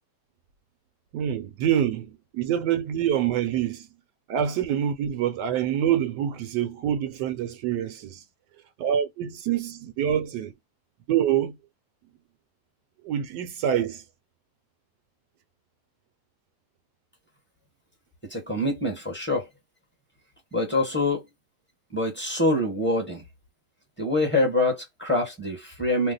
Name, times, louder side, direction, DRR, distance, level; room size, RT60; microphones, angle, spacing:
voice 1, 1.1-3.9 4.3-8.2 8.8-10.5 11.1-11.5 13.0-14.0, right 10 dB, 80° right, 1.2 m, -26 dB
voice 2, 18.2-19.5 20.5-21.2 21.9-23.2 24.0-26.1, left 2 dB, 10° left, 0.8 m, -25 dB
2.9 x 2.1 x 3.8 m
omnidirectional pair, 1.8 m